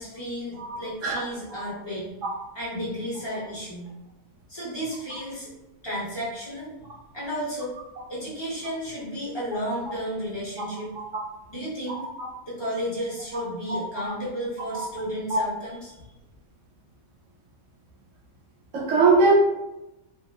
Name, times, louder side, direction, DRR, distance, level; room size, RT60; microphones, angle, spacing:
voice 1, 0.0-2.1 2.5-3.9 4.5-5.5 5.8-6.7 7.1-7.8 8.1-10.9 11.5-12.1 12.5-15.9, equal, 30° left, -8 dB, 0.5 m, -33 dB
voice 2, 0.6-1.2 1.6-1.7 2.2-2.3 12.2-12.3 13.7-14.0 14.7-14.8 15.3-15.4 18.7-19.4, right 3 dB, 70° right, -1 dB, 0.8 m, -22 dB
2.8 x 2.2 x 2.3 m, 0.96 s
omnidirectional pair, 1.5 m